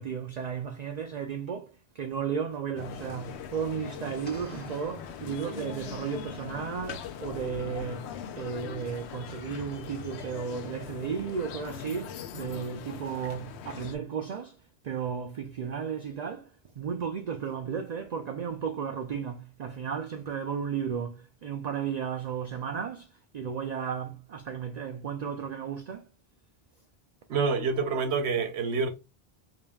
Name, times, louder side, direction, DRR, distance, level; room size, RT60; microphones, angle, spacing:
voice 1, 0.0-14.6 14.8-16.5 16.8-26.1, right 7 dB, 55° right, 0.5 m, -34 dB
sound 1, 2.8-14.0, left 7 dB, 85° left, 0.9 m, -41 dB
sound 2, 4.2-6.2, left 2 dB, 10° left, 1.1 m, -48 dB
voice 2, 27.3-28.9, right 4 dB, 85° right, 0.9 m, -27 dB
5.1 x 2.8 x 2.2 m
omnidirectional pair, 1.1 m